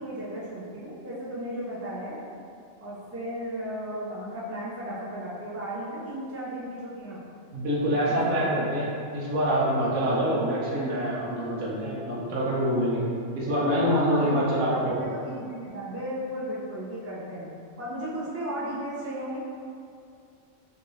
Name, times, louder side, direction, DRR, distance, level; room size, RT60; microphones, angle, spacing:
voice 1, 0.0-2.2 2.8-7.2 7.8-8.6 13.9-17.5 17.8-19.4, right 1 dB, 15° right, -8 dB, 0.6 m, -35 dB
voice 2, 7.5-13.0 13.3-15.0, equal, 85° right, -6 dB, 1.3 m, -25 dB
5.2 x 2.7 x 3.1 m, 2.4 s
omnidirectional pair, 1.4 m